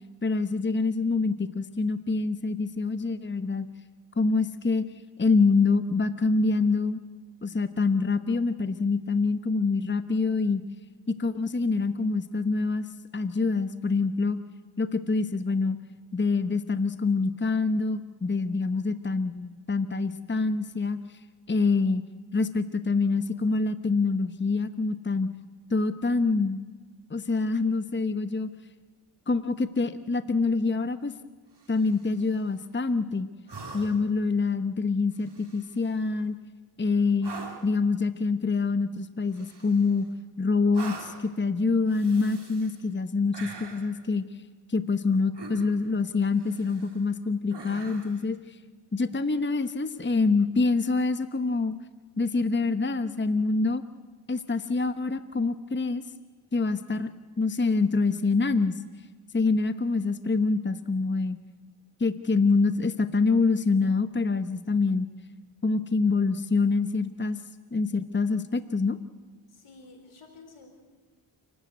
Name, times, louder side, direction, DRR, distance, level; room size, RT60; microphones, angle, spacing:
voice 1, 0.2-3.7 4.2-4.8 5.2-7.0 7.4-10.6 11.1-12.9 13.1-14.4 14.8-15.8 16.1-21.0 21.5-22.0 22.3-25.3 25.7-26.6 27.1-28.5 29.3-31.1 31.7-33.3 33.7-36.4 36.8-37.3 37.6-40.1 40.4-44.2 44.7-48.6 48.9-51.7 52.2-53.8 54.3-56.0 56.5-57.1 57.4-58.8 59.3-61.4 62.0-65.1 65.6-67.4 67.7-69.0, left 4 dB, 20° left, 11 dB, 1.0 m, -26 dB
sound 1, 31.5-32.3 33.5-34.2 35.2-35.9 37.2-37.8 39.3-40.1 40.7-41.3 41.9-42.8 43.3-44.0 45.3-45.9 46.4-47.0 47.5-48.3 50.1-50.2, right 3 dB, 55° right, 3.5 m, -44 dB
voice 2, 69.5-70.7, left 3 dB, 80° left, 4 dB, 4.3 m, -51 dB
28.5 x 13.0 x 8.2 m, 1.4 s
cardioid pair, 40°, 49 cm